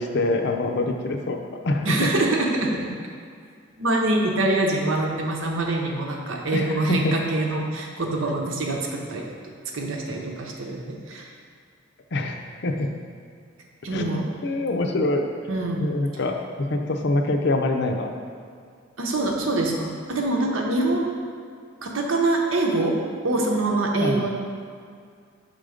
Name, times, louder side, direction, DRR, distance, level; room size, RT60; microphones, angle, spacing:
voice 1, 0.0-1.4 1.6-2.0 6.5-7.1 12.1-12.9 13.9-14.2 14.4-15.3 15.8-18.1 24.0-24.3, left 2 dB, 55° left, 3 dB, 0.6 m, -25 dB
voice 2, 1.8-2.9 3.8-11.3 13.8-14.3 15.5-15.8 19.0-21.1 21.8-24.3, right 2 dB, 75° right, 0 dB, 0.9 m, -25 dB
6.6 x 3.8 x 5.0 m, 2.2 s
head